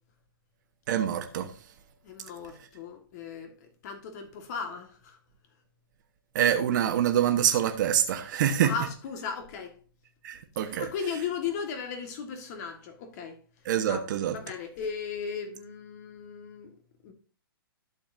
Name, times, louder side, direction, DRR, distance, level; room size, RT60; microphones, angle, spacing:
voice 1, 0.9-1.5 6.3-8.7 10.2-10.9 13.6-14.4, right 10 dB, 55° right, 1.2 m, -25 dB
voice 2, 2.0-5.2 8.6-9.8 10.8-13.4 13.9-14.0 14.3-16.7 17.0-17.1, left 6 dB, 45° left, 1.8 m, -36 dB
12.0 x 6.9 x 2.7 m
hypercardioid pair, 135°, 12 cm